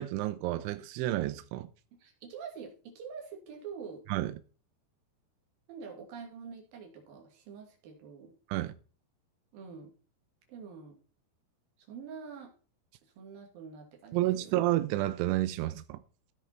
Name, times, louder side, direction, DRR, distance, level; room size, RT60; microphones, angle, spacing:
voice 1, 0.0-1.7 4.1-4.4 8.5-8.7 14.1-16.0, right 15 dB, 90° right, 3.1 m, -30 dB
voice 2, 2.0-4.0 5.7-8.3 9.5-9.9 10.5-11.0 11.9-12.5 13.2-14.6, right 6 dB, 55° right, 4.0 m, -45 dB
16.5 x 5.6 x 4.5 m
omnidirectional pair, 5.4 m